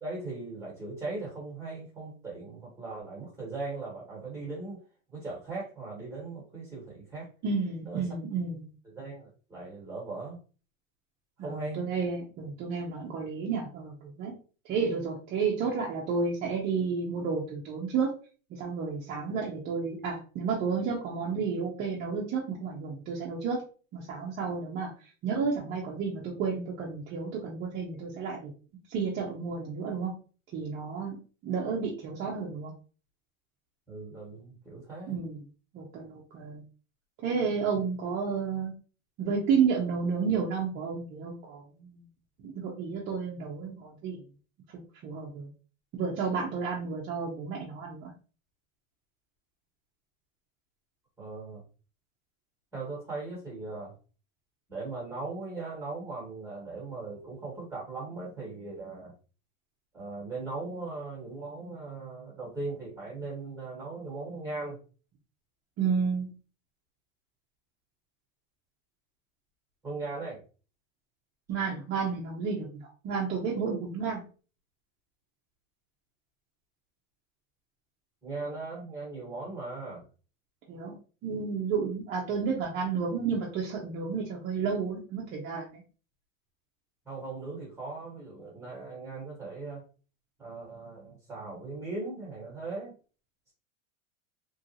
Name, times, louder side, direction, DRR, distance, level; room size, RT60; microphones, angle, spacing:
voice 1, 0.0-4.8 5.1-7.3 7.8-8.1 8.8-10.4 11.4-11.8 33.9-35.2 37.8-37.9 51.2-51.6 52.7-53.9 54.7-59.1 59.9-64.8 69.8-70.4 78.2-80.0 87.0-89.8 90.4-92.9, right 3 dB, 5° right, -6 dB, 1.3 m, -39 dB
voice 2, 7.4-8.6 11.4-14.3 14.6-18.1 18.5-23.6 23.9-24.9 25.2-28.5 28.9-30.1 30.5-31.2 31.4-32.7 35.1-35.4 35.7-36.6 37.2-38.7 39.2-42.1 42.4-44.2 44.7-45.5 45.9-48.1 65.8-66.3 71.5-74.2 80.7-80.9 81.2-85.8, right 5 dB, 25° right, -4 dB, 0.5 m, -31 dB
3.0 x 2.4 x 2.7 m, 0.37 s
supercardioid pair, 150°, 39 cm